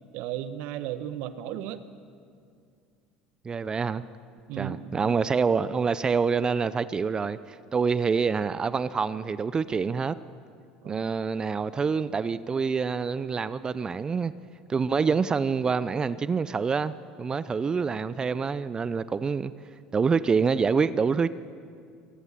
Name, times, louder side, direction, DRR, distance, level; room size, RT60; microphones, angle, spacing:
voice 1, 0.1-1.8 4.5-5.1 10.8-11.1, right 11 dB, 65° right, 12 dB, 1.3 m, -35 dB
voice 2, 3.4-4.0 4.6-10.2 10.9-14.3 14.7-16.9 17.2-19.5 19.9-21.3, right 5 dB, 30° right, 16 dB, 0.7 m, -26 dB
24.5 x 19.0 x 7.5 m, 2.3 s
hypercardioid pair, 75°, 3 cm